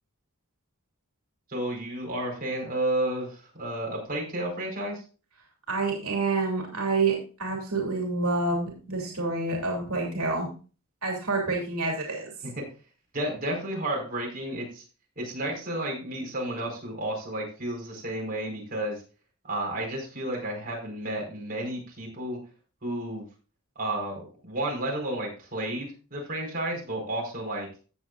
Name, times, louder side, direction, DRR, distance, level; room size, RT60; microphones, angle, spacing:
voice 1, 1.5-5.0 13.1-14.8 15.2-19.0 19.4-22.4 22.8-23.2 23.7-27.7, right 1 dB, 40° right, -1 dB, 4.7 m, -32 dB
voice 2, 5.7-10.5 11.0-12.3, right 3 dB, 85° right, 0 dB, 3.0 m, -28 dB
16.0 x 7.6 x 2.5 m, 0.36 s
head